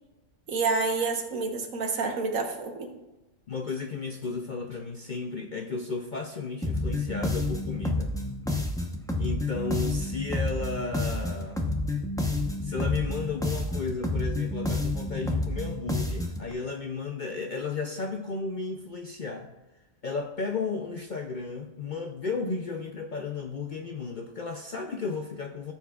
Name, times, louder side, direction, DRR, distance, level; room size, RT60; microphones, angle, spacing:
voice 1, 0.5-2.9, right 4 dB, 75° right, 4 dB, 1.5 m, -28 dB
voice 2, 3.5-8.1 9.2-11.6 12.6-19.5 20.0-25.7, left 4 dB, 55° left, 3 dB, 0.5 m, -34 dB
sound 1, 6.6-16.5, left 2 dB, 5° left, 0.6 m, -29 dB
13.5 x 7.2 x 2.3 m, 1.0 s
omnidirectional pair, 1.4 m